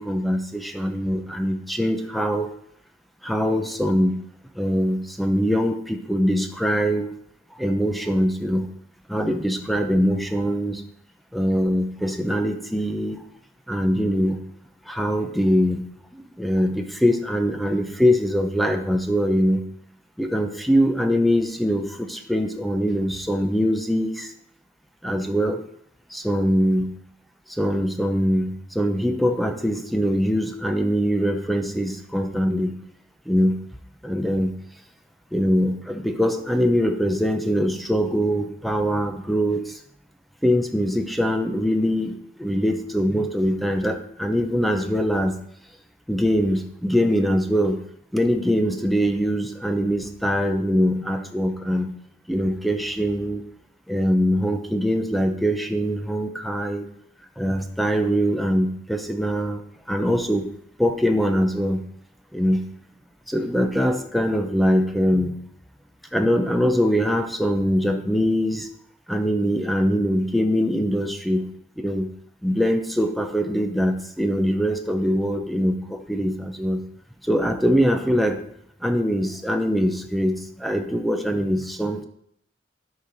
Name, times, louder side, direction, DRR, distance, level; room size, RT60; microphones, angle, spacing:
voice 1, 0.0-2.5 3.2-4.2 4.6-7.1 7.5-8.7 9.1-10.8 11.3-13.2 13.7-14.4 14.9-15.8 16.1-19.6 20.2-24.3 25.0-25.6 26.1-27.0 27.5-32.7 33.3-33.6 34.0-34.5 35.3-39.8 40.4-45.3 46.1-47.8 48.1-51.9 52.3-53.4 53.9-56.9 57.4-59.6 59.9-60.5 60.8-61.8 62.3-62.6 63.3-65.4 66.1-68.7 69.1-71.5 71.8-72.1 72.4-76.8 77.2-78.4 78.8-82.0, equal, ahead, 5 dB, 0.7 m, -23 dB
12.5 x 5.0 x 4.1 m, 0.69 s
head